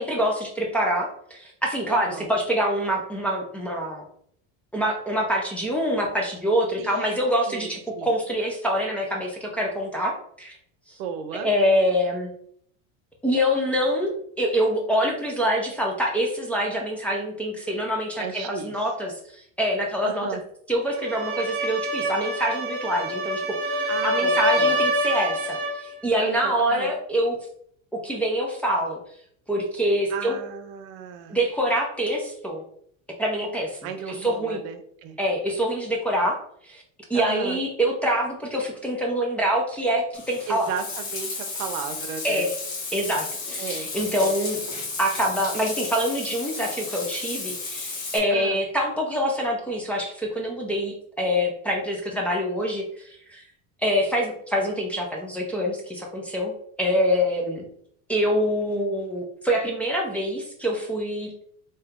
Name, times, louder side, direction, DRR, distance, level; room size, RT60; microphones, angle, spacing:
voice 1, 0.0-4.0 4.7-10.1 10.4-10.6 10.9-11.0 11.4-12.3 13.2-20.3 20.7-25.6 25.8-27.4 28.0-29.0 29.5-30.4 31.3-32.6 33.2-34.6 35.2-36.4 36.6-36.8 37.1-40.7 42.2-42.5 42.9-44.6 45.0-53.4 53.8-57.6 58.1-61.3, equal, 5° left, -3 dB, 0.6 m, -25 dB
voice 2, 1.9-2.3 6.8-8.1 11.0-11.5 18.2-18.7 20.0-20.4 23.9-24.8 26.2-26.9 30.1-31.4 33.8-35.2 37.1-37.6 40.5-42.5 43.6-43.9 44.2-44.4 48.3-48.6, right 7 dB, 80° right, 7 dB, 0.7 m, -34 dB
sound 1, 20.9-25.8, equal, 35° right, 0.9 m, -25 dB
Bathtub (filling or washing), 40.1-48.2, left 3 dB, 45° left, 1.1 m, -33 dB
3.3 x 2.9 x 3.6 m, 0.65 s
supercardioid pair, 135°, 39 cm